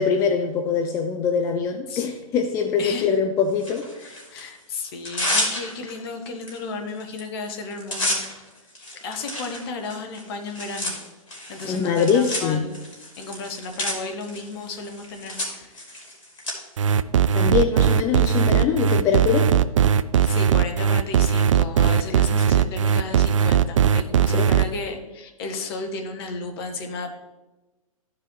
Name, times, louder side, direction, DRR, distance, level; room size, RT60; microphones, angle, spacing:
voice 1, 0.0-4.2 11.7-12.7 17.3-19.5 24.3-24.5, left 6 dB, 15° left, 5 dB, 0.4 m, -23 dB
voice 2, 2.8-3.1 4.3-8.5 8.7-10.9 11.5-12.8 13.2-16.1 20.1-27.1, left 3 dB, 45° left, 5 dB, 1.2 m, -34 dB
Tearing, 3.6-4.4 4.9-6.0 6.5-6.6 6.9-7.2 7.5-16.5, left 1 dB, 65° left, 2.9 m, -31 dB
sound 1, 16.8-24.6, right 8 dB, 60° right, 0.4 m, -19 dB
14.0 x 4.9 x 3.2 m, 1.1 s
figure-of-eight pair, 110°, 18 cm